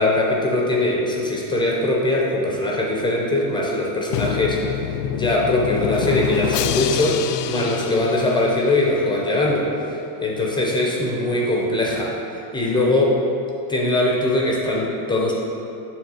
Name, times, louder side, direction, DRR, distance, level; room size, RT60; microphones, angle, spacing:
voice 1, 0.0-4.6 5.1-9.7 10.2-12.1 12.5-13.2 13.7-15.3, left 2 dB, 10° left, -2 dB, 0.6 m, -21 dB
Drum, 4.1-9.0, left 10 dB, 85° left, 0.5 m, -26 dB
7.2 x 3.8 x 6.2 m, 2.7 s
supercardioid pair, 150°, 46 cm